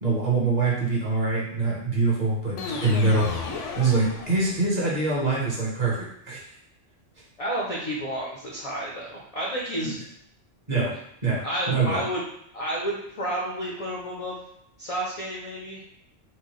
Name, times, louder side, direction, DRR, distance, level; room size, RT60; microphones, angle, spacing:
voice 1, 0.0-3.3 3.8-6.4 9.8-9.9 10.7-10.9 11.2-11.4 11.7-12.0, right 3 dB, 35° right, -5 dB, 1.0 m, -24 dB
sound 1, 2.6-4.9, left 4 dB, 75° left, 0.9 m, -34 dB
voice 2, 7.4-10.0 11.4-12.2 12.5-14.4 14.8-15.9, right 1 dB, 50° left, -3 dB, 0.4 m, -31 dB
4.3 x 2.2 x 3.0 m, 0.74 s
omnidirectional pair, 1.3 m